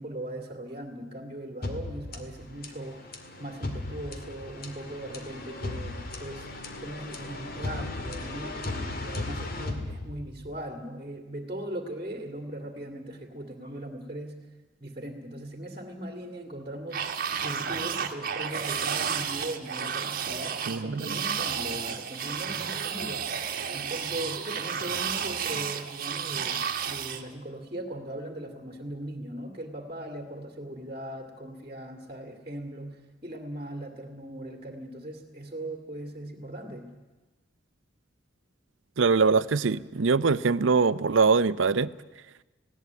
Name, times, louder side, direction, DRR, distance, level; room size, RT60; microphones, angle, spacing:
voice 1, 0.0-3.1 3.4-6.5 6.8-14.4 14.8-23.4 23.7-36.9, right 1 dB, 30° right, 5 dB, 2.2 m, -39 dB
sound 1, 1.6-10.6, left 2 dB, 50° left, 2.1 m, -37 dB
sound 2, 16.9-27.2, right 7 dB, 50° right, 1.4 m, -32 dB
voice 2, 20.7-21.2 39.0-41.9, right 4 dB, 70° right, 17 dB, 0.6 m, -23 dB
19.5 x 17.0 x 9.3 m, 1.1 s
head